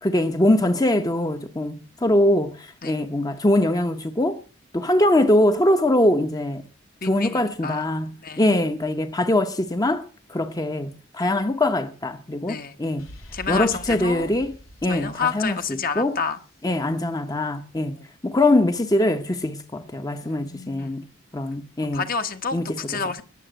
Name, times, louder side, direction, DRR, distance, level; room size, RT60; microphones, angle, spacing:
voice 1, 0.0-4.4 4.7-6.6 7.0-13.1 13.5-14.6 14.8-16.2 16.6-21.0 21.3-22.0 22.5-22.6, left 1 dB, 20° left, 0.9 m, -22 dB
voice 2, 7.0-7.9 8.2-8.5 12.5-12.8 13.3-14.3 14.9-16.4 18.0-18.1 20.2-21.0 21.9-23.2, left 5 dB, 45° left, 1.2 m, -29 dB
sound 1, 13.0-16.7, equal, 85° left, 2.6 m, -45 dB
20.5 x 7.3 x 7.9 m
head